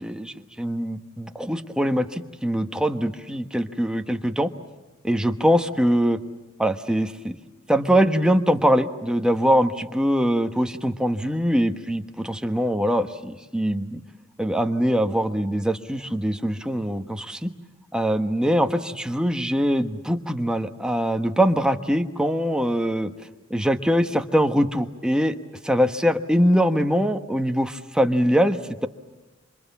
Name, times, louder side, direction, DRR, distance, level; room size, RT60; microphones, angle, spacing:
voice 1, 0.0-4.5 5.0-6.2 6.6-7.4 7.7-14.0 14.4-17.5 17.9-23.1 23.5-25.4 25.6-28.6, equal, 5° right, 6 dB, 1.2 m, -22 dB
28.0 x 26.5 x 7.3 m, 1.2 s
head